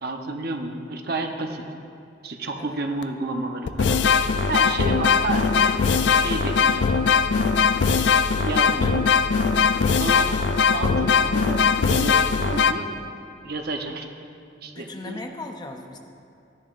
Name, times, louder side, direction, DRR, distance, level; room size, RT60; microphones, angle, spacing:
voice 1, 0.0-1.6 2.2-4.0 4.5-5.8 6.1-7.0 8.4-9.1 10.0-12.9 13.4-14.1 14.6-15.2, right 2 dB, 55° right, 4 dB, 0.8 m, -31 dB
sound 1, 3.0-3.1 3.7-12.7, left 5 dB, 70° left, 0.4 m, -20 dB
voice 2, 14.6-16.0, left 2 dB, 25° left, 4 dB, 0.6 m, -38 dB
14.5 x 11.0 x 2.5 m, 2.5 s
head